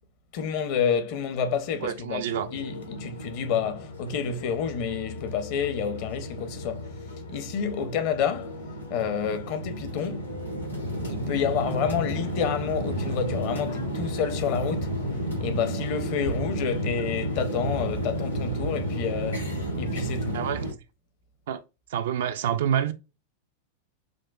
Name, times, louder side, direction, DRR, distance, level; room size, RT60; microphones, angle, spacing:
voice 1, 0.3-2.2 2.5-6.9 7.3-8.6 8.9-10.4 11.1-15.0 15.4-20.4, left 7 dB, 45° left, 0.7 m, -29 dB
voice 2, 1.8-2.5 20.3-20.7 21.5-21.6 21.9-22.9, right 9 dB, 55° right, 0.4 m, -27 dB
sound 1, 2.3-20.7, equal, 85° left, 1.1 m, -32 dB
6.1 x 2.2 x 2.4 m
figure-of-eight pair, 90°, 0 cm